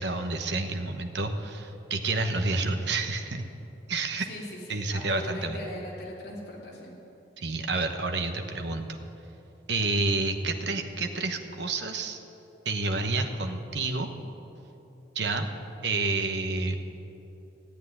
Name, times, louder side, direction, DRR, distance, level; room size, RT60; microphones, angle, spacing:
voice 1, 0.0-3.4 3.9-4.3 4.7-5.6 7.4-9.0 9.7-12.2 12.6-14.1 15.1-15.5 15.8-16.8, right 3 dB, 75° right, 5 dB, 1.1 m, -29 dB
voice 2, 4.3-6.9, left 1 dB, 60° left, -5 dB, 2.9 m, -40 dB
15.5 x 8.3 x 9.8 m, 3.0 s
head